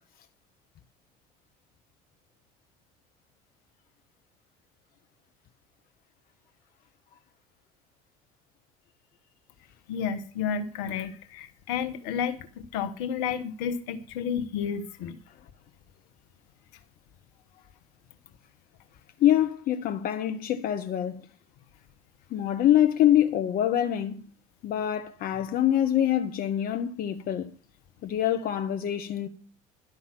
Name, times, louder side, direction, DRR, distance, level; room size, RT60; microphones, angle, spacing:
voice 1, 9.9-15.2, left 7 dB, 70° left, 1.2 m, -31 dB
voice 2, 19.2-21.2 22.3-24.2 24.6-27.5 28.0-29.3, left 11 dB, 50° left, 1.0 m, -25 dB
12.0 x 5.6 x 7.6 m
hypercardioid pair, 65°, 19 cm